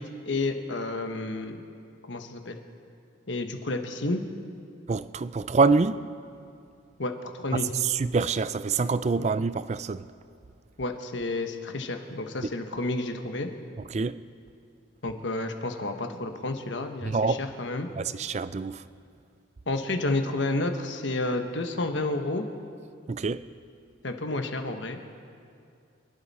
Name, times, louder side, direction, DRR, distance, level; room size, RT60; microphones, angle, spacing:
voice 1, 0.0-1.6 2.1-2.6 3.3-4.2 7.0-7.8 10.8-13.5 15.0-17.9 19.7-22.4 24.0-25.0, left 2 dB, 70° left, 1.2 m, -30 dB
voice 2, 4.9-6.0 7.5-10.1 13.9-14.2 17.0-17.4 17.9-18.8 23.1-23.4, right 4 dB, 35° right, 0.3 m, -26 dB
26.0 x 12.0 x 4.2 m
head